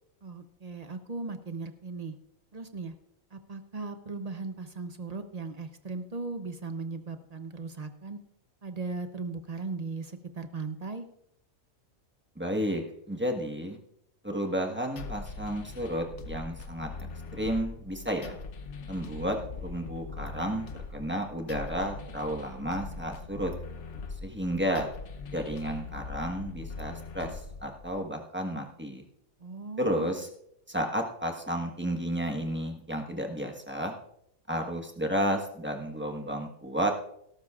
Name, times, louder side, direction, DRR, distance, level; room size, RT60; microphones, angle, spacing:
voice 1, 0.2-2.2 2.5-2.9 3.3-8.2 8.6-11.1 29.4-30.1, right 3 dB, 35° right, 8 dB, 0.7 m, -38 dB
voice 2, 12.4-12.8 13.1-13.8 14.2-18.3 18.9-23.5 24.2-24.9 25.3-29.0 29.8-30.3 30.7-33.9 34.5-36.9, equal, 10° right, 2 dB, 1.3 m, -32 dB
sound 1, 15.0-28.0, left 4 dB, 60° left, 1.1 m, -41 dB
17.5 x 12.5 x 2.4 m, 0.74 s
omnidirectional pair, 1.5 m